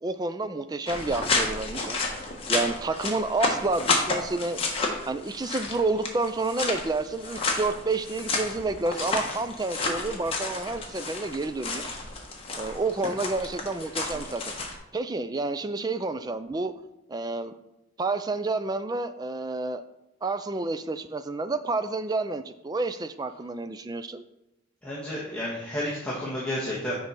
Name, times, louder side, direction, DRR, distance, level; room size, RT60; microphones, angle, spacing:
voice 1, 0.0-2.0 2.5-4.6 5.1-11.9 12.6-14.4 14.9-16.7 17.1-17.5 18.0-19.8 20.2-24.2, right 3 dB, 20° right, 10 dB, 0.4 m, -29 dB
sound 1, 0.9-14.7, left 3 dB, 30° left, 1.2 m, -31 dB
voice 2, 24.8-27.0, left 1 dB, 5° left, -8 dB, 1.4 m, -31 dB
6.6 x 4.6 x 5.5 m, 0.94 s
head